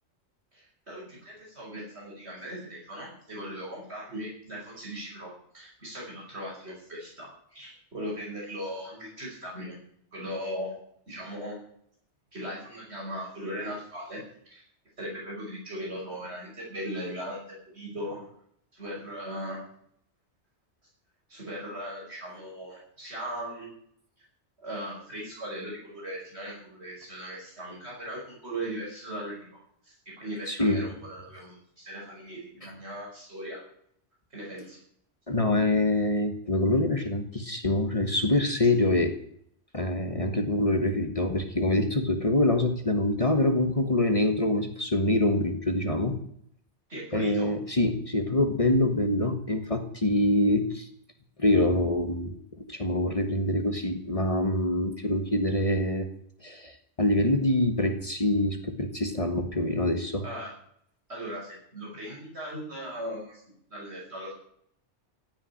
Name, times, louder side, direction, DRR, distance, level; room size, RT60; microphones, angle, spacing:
voice 1, 0.5-9.8 10.1-10.7 11.1-11.6 12.3-14.6 15.0-18.2 18.7-19.6 21.3-23.7 24.6-33.6 34.3-34.8 46.9-47.5 60.2-60.5 61.1-63.4 63.7-64.3, equal, 70° right, -4 dB, 6.3 m, -38 dB
voice 2, 30.5-30.8 35.3-39.2 39.7-46.2 47.1-50.9 51.4-52.4 52.7-56.1 56.4-60.2, left 1 dB, 30° left, 7 dB, 1.5 m, -25 dB
15.5 x 7.0 x 10.0 m, 0.67 s
omnidirectional pair, 1.1 m